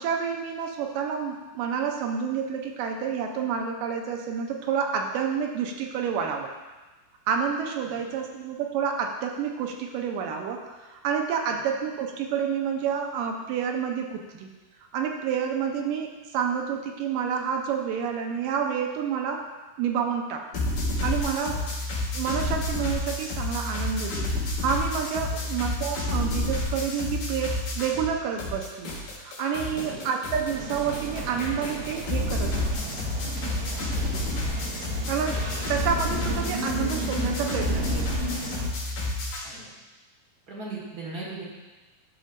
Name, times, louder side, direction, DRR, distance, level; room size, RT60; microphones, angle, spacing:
voice 1, 0.0-6.5 7.3-14.5 14.9-20.5 21.0-21.6 22.1-32.7 34.1-34.4 35.1-38.1, right 7 dB, 80° right, 3 dB, 2.3 m, -29 dB
voice 2, 7.8-8.2 21.5-21.7 25.3-25.5 29.7-30.0 33.9-34.1 39.4-39.7 40.5-41.4, right 3 dB, 40° right, -4 dB, 1.4 m, -40 dB
sound 1, 20.5-28.1 28.4-39.4, left 2 dB, 85° left, 3.3 m, -30 dB
sound 2, 30.5-38.7, right 2 dB, 65° right, 1.8 m, -35 dB
11.0 x 6.2 x 2.6 m, 1.2 s
omnidirectional pair, 3.9 m